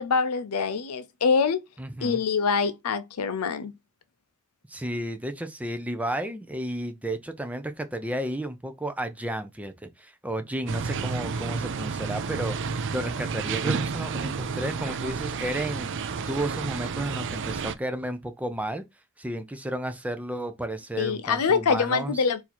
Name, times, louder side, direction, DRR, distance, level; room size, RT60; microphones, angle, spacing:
voice 1, 0.0-1.6 2.0-3.7 21.0-22.4, left 5 dB, 85° left, 0.5 m, -25 dB
voice 2, 1.8-2.2 4.7-18.8 19.2-22.1, right 1 dB, 5° right, 0.5 m, -32 dB
sound 1, 10.7-17.7, right 5 dB, 55° right, 0.4 m, -31 dB
4.5 x 2.7 x 4.2 m
head